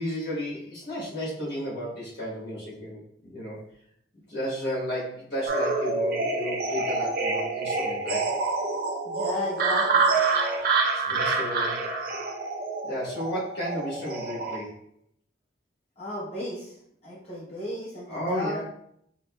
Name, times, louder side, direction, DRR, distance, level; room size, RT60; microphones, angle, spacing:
voice 1, 0.0-3.6 4.3-8.3 10.9-11.8 12.3-12.4 12.8-14.8 18.1-18.6, equal, 65° left, -6 dB, 1.2 m, -33 dB
sound 1, 5.5-14.6, right 3 dB, 55° right, 0.5 m, -27 dB
voice 2, 9.0-10.1 16.0-16.8 17.0-18.6, left 1 dB, 35° left, -8 dB, 0.9 m, -35 dB
4.7 x 2.0 x 2.3 m, 0.71 s
head